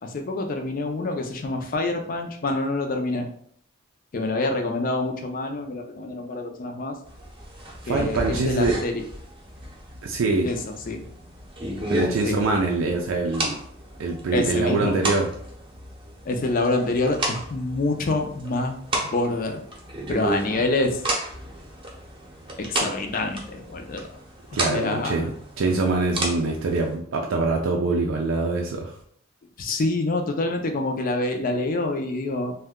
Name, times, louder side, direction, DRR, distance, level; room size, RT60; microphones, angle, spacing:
voice 1, 0.0-3.3 4.1-7.0 7.9-9.0 10.4-11.0 12.2-12.4 14.3-15.0 16.3-18.7 19.0-19.6 20.1-21.0 22.6-24.0 24.5-25.3 29.6-32.5, left 2 dB, 45° left, 4 dB, 0.4 m, -26 dB
sound 1, 7.0-27.0, right 1 dB, 25° right, 0.7 m, -33 dB
voice 2, 7.8-8.7 10.0-10.5 11.9-13.6 14.0-15.3 24.5-25.3 25.6-28.9, right 3 dB, 90° right, 1 dB, 0.4 m, -24 dB
2.6 x 2.2 x 3.5 m, 0.63 s
head